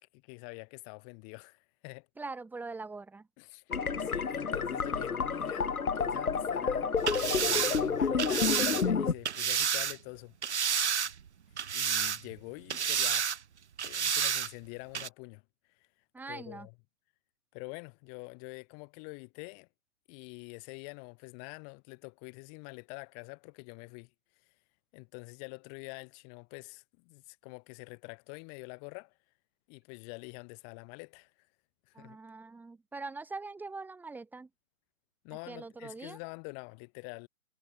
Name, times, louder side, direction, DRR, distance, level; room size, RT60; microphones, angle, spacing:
voice 1, 0.1-2.1 3.4-3.6 4.0-6.9 7.4-10.3 11.7-13.3 13.8-15.4 15.8-15.9 16.3-16.7 17.5-19.7 20.1-24.1 24.9-29.1 29.7-31.3 31.9-32.2 35.2-37.3, left 40 dB or more, 20° left, 4.6 m, -46 dB
voice 2, 2.2-3.3 16.1-16.7 31.9-34.5 35.5-36.2, right 3 dB, 5° right, 6.7 m, -42 dB
sound 1, 3.7-9.1, left 5 dB, 90° left, 1.4 m, -30 dB
sound 2, 7.0-10.0 10.4-11.3 11.6-12.4 12.7-13.4 13.8-14.5 14.9-15.1, right 8 dB, 50° right, 4.0 m, -30 dB
hypercardioid pair, 150°, 42 cm